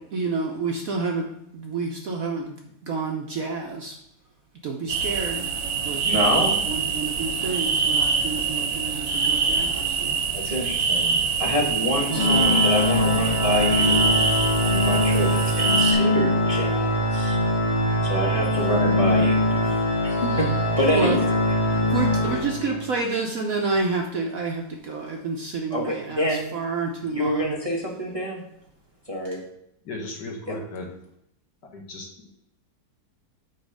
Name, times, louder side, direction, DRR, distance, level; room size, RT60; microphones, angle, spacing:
voice 1, 0.1-2.6 2.8-3.9 4.6-5.5 5.8-10.1 12.1-12.6 19.5-19.8 20.9-21.2 21.6-27.5, right 4 dB, 55° right, 1 dB, 1.0 m, -29 dB
sound 1, 4.9-15.9, right 5 dB, 80° right, 1.8 m, -24 dB
voice 2, 6.0-6.6 10.3-14.1 14.6-17.4 18.0-19.8 20.0-21.2 25.7-26.5 27.1-28.4 29.1-29.5 30.5-30.6, equal, 20° right, -4 dB, 1.1 m, -27 dB
Organ, 12.1-22.9, left 1 dB, 25° left, 1.5 m, -22 dB
voice 3, 29.9-30.9 31.7-32.4, left 2 dB, 65° left, 1 dB, 1.9 m, -36 dB
8.8 x 3.1 x 6.4 m, 0.77 s
omnidirectional pair, 2.1 m